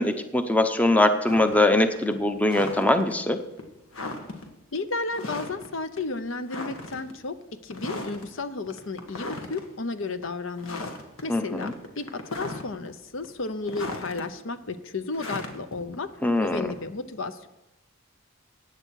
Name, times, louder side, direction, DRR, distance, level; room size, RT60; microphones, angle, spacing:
voice 1, 0.0-3.4 11.3-11.7 16.2-16.7, left 1 dB, 5° left, 8 dB, 0.6 m, -22 dB
sound 1, 1.2-1.6 2.0-3.1 3.6-3.7 3.9-4.4 5.1-5.7 6.0-6.1 6.5-7.1 7.7-8.3 8.7-9.6 10.1-10.2 10.6-11.2 11.5-12.9 13.2-14.2 15.1-16.9, left 2 dB, 85° left, 1.8 m, -37 dB
voice 2, 4.7-7.4 7.6-10.9 11.2-16.1 16.4-17.5, left 3 dB, 65° left, 11 dB, 0.7 m, -33 dB
14.5 x 9.1 x 4.7 m, 0.93 s
head